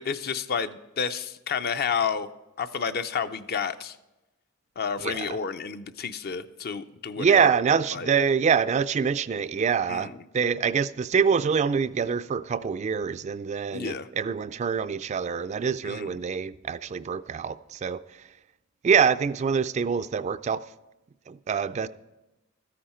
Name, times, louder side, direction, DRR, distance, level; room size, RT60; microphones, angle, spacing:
voice 1, 0.0-2.3 2.6-4.0 4.8-7.5 7.9-8.1 9.9-10.2 13.7-14.1 15.8-16.2, left 6 dB, 50° left, 0.5 m, -30 dB
voice 2, 5.0-5.4 7.2-18.0 18.8-20.6 21.3-21.9, right 6 dB, 35° right, 0.3 m, -25 dB
13.5 x 10.0 x 4.3 m
head